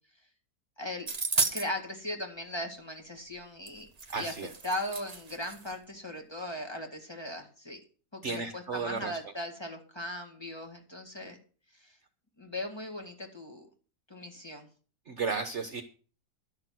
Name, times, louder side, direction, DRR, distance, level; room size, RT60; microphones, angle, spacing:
sound 1, 1.1-1.7 3.7-3.8 4.0-5.7, right 4 dB, 30° right, 1.1 m, -33 dB
voice 1, 1.4-4.3 4.6-7.8 8.1-11.4 11.7-12.0 12.4-13.7 14.1-14.7, left 1 dB, 15° left, 3 dB, 2.0 m, -38 dB
voice 2, 4.1-4.5 8.2-9.1 15.1-15.8, right 4 dB, 50° right, 6 dB, 1.2 m, -33 dB
12.0 x 6.6 x 7.7 m, 0.40 s
omnidirectional pair, 1.7 m